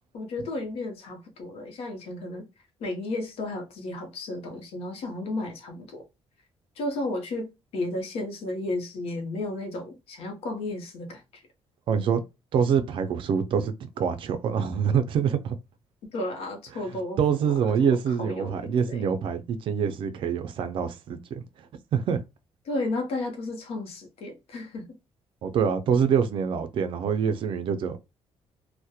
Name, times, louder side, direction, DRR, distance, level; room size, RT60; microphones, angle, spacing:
voice 1, 0.1-2.5 2.8-6.0 6.8-11.4 16.1-17.2 17.8-19.1 22.7-24.9, left 2 dB, 70° left, 0.7 m, -33 dB
voice 2, 11.9-12.2 12.5-15.6 17.2-21.2 21.9-22.2 25.4-28.0, right 7 dB, 55° right, 0.4 m, -25 dB
2.7 x 2.1 x 2.3 m
cardioid pair, 165°, 11 cm